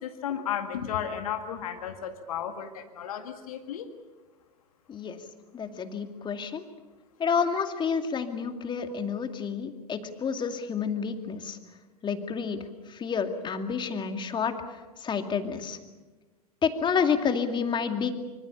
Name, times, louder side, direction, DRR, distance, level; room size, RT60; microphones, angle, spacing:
voice 1, 0.0-3.9, left 9 dB, 65° left, 7 dB, 2.0 m, -34 dB
voice 2, 5.5-6.6 7.2-11.6 12.0-12.6 12.9-14.5 15.0-15.8 16.6-18.1, left 6 dB, 25° left, 7 dB, 2.4 m, -29 dB
25.5 x 25.0 x 6.9 m, 1.2 s
figure-of-eight pair, 90°, 20 cm